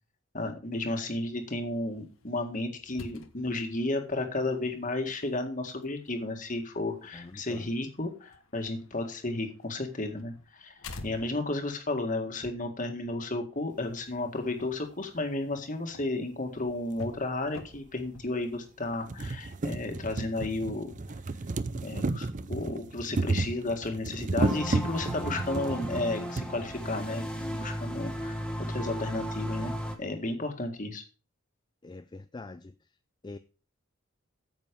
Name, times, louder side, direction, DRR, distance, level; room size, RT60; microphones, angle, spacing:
voice 1, 0.3-10.7 11.0-20.9 21.8-27.3 27.5-29.7 30.0-31.0, left 2 dB, 40° left, 1.9 m, -33 dB
sound 1, 1.2-18.3, left 2 dB, 85° left, 1.3 m, -50 dB
voice 2, 7.1-7.7 31.8-32.7 33.2-33.4, left 3 dB, 20° left, 0.4 m, -44 dB
sound 2, 16.9-17.0 18.0-18.1 18.5-18.6 18.9-26.5 27.4-27.5 27.7-27.8, right 2 dB, 40° right, 0.5 m, -32 dB
sound 3, 24.4-30.0, equal, 5° left, 1.4 m, -35 dB
9.4 x 7.5 x 5.2 m
head